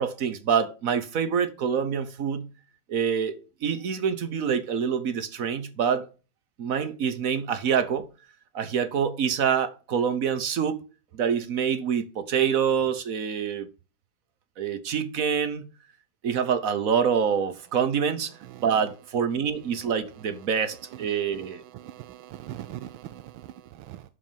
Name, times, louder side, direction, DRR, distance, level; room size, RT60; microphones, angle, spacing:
voice 1, 0.0-2.5 2.9-6.1 6.6-8.1 8.5-10.8 11.1-13.7 14.6-15.7 16.2-18.3 18.6-21.6, right 7 dB, 50° right, 1.2 m, -26 dB
voice 2, 21.3-24.0, right 12 dB, 90° right, 1.5 m, -41 dB
11.5 x 4.6 x 7.4 m
omnidirectional pair, 2.1 m